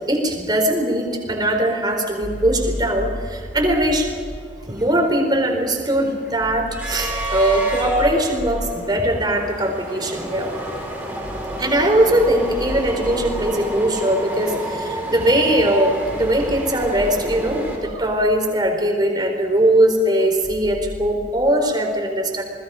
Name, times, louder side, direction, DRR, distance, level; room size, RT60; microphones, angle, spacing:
voice 1, 0.1-4.1 4.6-10.5 11.6-22.4, right 1 dB, 25° right, 2 dB, 4.5 m, -20 dB
sound 1, 2.2-4.5 6.4-8.9 11.2-13.8 16.0-18.6 20.4-21.1, equal, 55° left, 5.0 m, -34 dB
sound 2, 2.4-2.5 2.7-3.0 3.4-17.8, right 1 dB, 5° right, 6.3 m, -31 dB
29.0 x 20.5 x 5.2 m, 2.2 s
head